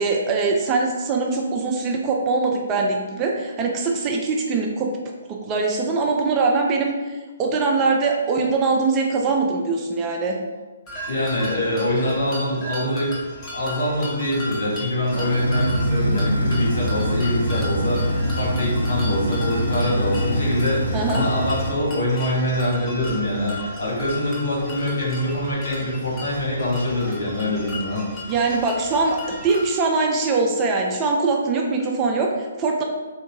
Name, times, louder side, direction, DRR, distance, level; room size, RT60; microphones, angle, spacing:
voice 1, 0.0-5.0 5.3-10.4 20.9-21.3 28.3-32.8, right 3 dB, 20° right, 1 dB, 0.3 m, -22 dB
sound 1, 10.9-29.8, left 1 dB, 20° left, 0.6 m, -36 dB
voice 2, 11.1-13.1 13.5-28.0, left 1 dB, 65° left, -5 dB, 1.3 m, -24 dB
sound 2, 15.1-21.7, equal, 80° left, 0.7 m, -24 dB
3.6 x 2.3 x 2.7 m, 1.3 s
figure-of-eight pair, 130°, 0 cm